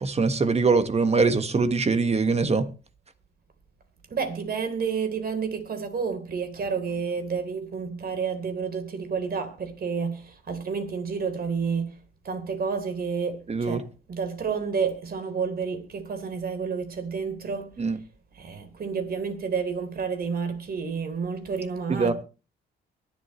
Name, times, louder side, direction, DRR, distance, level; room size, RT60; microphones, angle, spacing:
voice 1, 0.0-2.7 13.5-13.8 17.8-18.0 21.9-22.1, right 4 dB, 30° right, 1.5 m, -23 dB
voice 2, 4.1-11.9 12.2-17.7 18.3-22.1, right 5 dB, 50° right, 3.7 m, -30 dB
23.5 x 8.2 x 3.2 m
cardioid pair, 90°, 20 cm